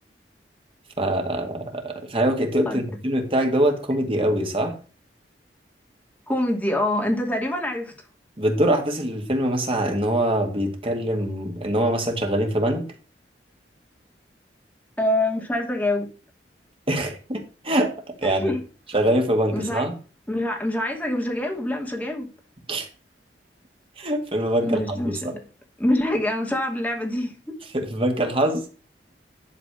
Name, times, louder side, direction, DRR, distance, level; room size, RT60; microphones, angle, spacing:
voice 1, 1.0-4.8 8.4-12.8 16.9-17.9 18.2-18.5 18.9-19.9 22.7-22.9 24.0-25.4 27.7-28.7, right 1 dB, 35° right, 2.2 m, -23 dB
voice 2, 6.3-7.9 15.0-16.1 18.2-18.6 19.5-19.9 20.3-22.3 24.6-25.2 25.8-27.3, left 1 dB, 10° left, 2.5 m, -25 dB
11.5 x 4.0 x 6.3 m
head